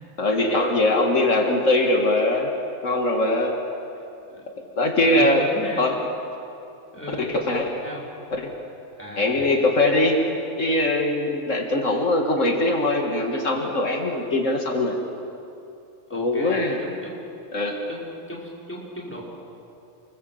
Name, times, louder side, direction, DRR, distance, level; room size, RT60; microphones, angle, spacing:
voice 1, 0.2-2.5 2.8-3.6 4.8-5.5 5.8-6.0 7.2-7.7 8.3-8.5 9.2-10.2 10.6-15.0 16.1-16.8 17.5-17.8, left 2 dB, 75° left, 2 dB, 2.4 m, -21 dB
voice 2, 1.2-1.9 4.3-4.5 5.0-5.8 6.9-7.2 7.8-8.0 9.0-9.5 16.1-17.1 17.9-19.2, equal, 10° left, -5 dB, 5.8 m, -37 dB
29.0 x 22.0 x 7.9 m, 2.7 s
omnidirectional pair, 1.3 m